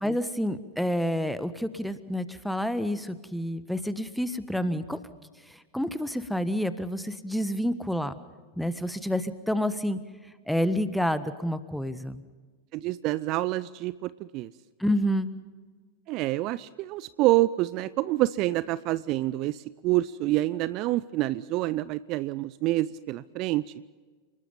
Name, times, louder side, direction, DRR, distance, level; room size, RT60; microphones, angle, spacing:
voice 1, 0.0-5.0 5.5-8.1 8.6-10.0 10.5-12.2 14.8-15.3, equal, ahead, 13 dB, 1.3 m, -29 dB
voice 2, 12.7-14.5 16.1-23.7, right 17 dB, 40° right, 18 dB, 0.5 m, -27 dB
30.0 x 20.0 x 5.3 m, 1.4 s
figure-of-eight pair, 90°, 0 cm